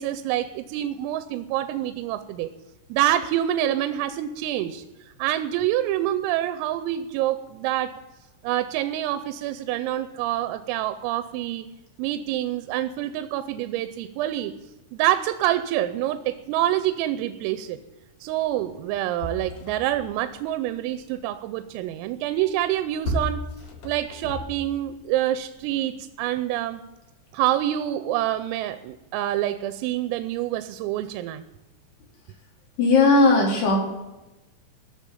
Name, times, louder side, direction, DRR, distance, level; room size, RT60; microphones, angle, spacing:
voice 1, 0.0-2.5 2.9-4.8 5.2-7.9 8.4-11.7 12.0-14.6 14.9-17.8 18.2-23.4 23.8-26.8 27.3-31.4, right 13 dB, 85° right, 11 dB, 3.4 m, -26 dB
sound 1, 18.5-18.6 18.9-20.2 22.5-24.9 25.6-25.7, equal, 70° left, 1.7 m, -34 dB
voice 2, 32.8-33.8, left 3 dB, 55° left, -1 dB, 5.2 m, -17 dB
15.5 x 7.1 x 9.9 m, 1.0 s
omnidirectional pair, 5.9 m